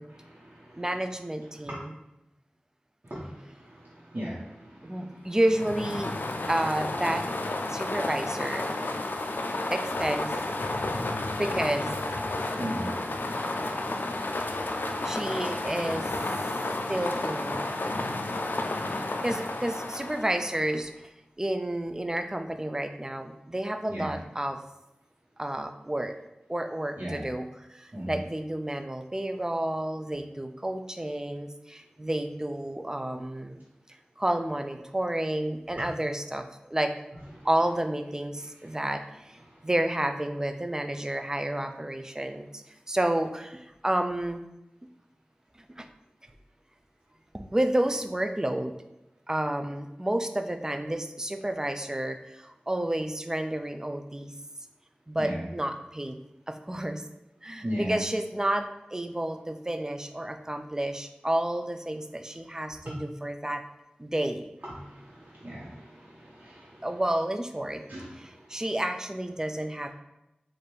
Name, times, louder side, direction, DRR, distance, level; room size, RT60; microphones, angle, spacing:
voice 1, 0.1-0.8 1.6-1.8 3.0-5.3 12.6-12.9 23.9-24.1 27.0-27.2 27.9-28.2 35.8-35.9 37.4-37.5 38.7-38.8 55.2-55.4 57.6-58.0 62.8-62.9 64.7-66.9 67.9-68.1, equal, 55° right, -9 dB, 1.1 m, -37 dB
voice 2, 0.8-2.0 4.8-6.2 6.5-7.2 7.7-8.7 9.7-10.3 11.3-11.9 15.0-16.1 16.9-17.7 19.2-20.9 21.4-24.6 25.4-26.1 26.5-33.6 34.2-36.9 37.4-39.4 39.6-42.5 42.9-44.4 45.8-45.9 47.3-48.8 49.3-54.3 55.1-56.2 56.5-57.0 57.4-58.7 58.9-63.6 64.0-64.4 66.8-67.8 68.2-69.9, right 1 dB, 20° right, 7 dB, 0.4 m, -30 dB
sound 1, 5.4-20.8, left 2 dB, 80° left, 0.3 m, -31 dB
3.2 x 2.5 x 4.4 m, 0.90 s
wide cardioid pair, 60°, 3 cm